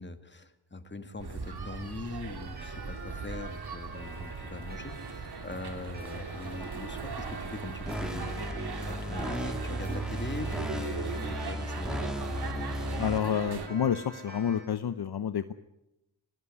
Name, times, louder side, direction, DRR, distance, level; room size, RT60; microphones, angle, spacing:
voice 1, 0.0-8.5 8.8-12.1, left 3 dB, 25° left, 9 dB, 2.0 m, -42 dB
sound 1, 1.2-13.7, right 5 dB, 55° right, 3.2 m, -38 dB
Clock, 2.6-14.6, right 2 dB, 20° right, 7.4 m, -48 dB
sound 2, 7.9-13.2, equal, ahead, 1.9 m, -35 dB
voice 2, 13.0-15.5, left 8 dB, 55° left, 11 dB, 1.0 m, -29 dB
21.5 x 18.0 x 9.7 m, 0.90 s
cardioid pair, 80°, 46 cm